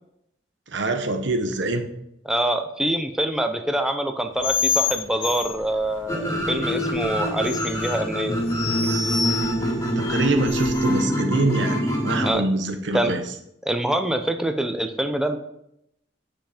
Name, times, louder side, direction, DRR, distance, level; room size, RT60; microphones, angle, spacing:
voice 1, 0.7-1.9 10.0-13.2, right 2 dB, 70° right, 5 dB, 1.2 m, -24 dB
voice 2, 2.3-8.4 12.2-12.4 12.9-13.1 13.6-15.4, right 1 dB, 5° right, 6 dB, 0.7 m, -25 dB
sound 1, 4.4-11.0, left 5 dB, 75° left, 0.9 m, -29 dB
sound 2, 6.1-12.3, equal, 15° left, 2.5 m, -25 dB
9.6 x 5.7 x 5.1 m, 0.79 s
head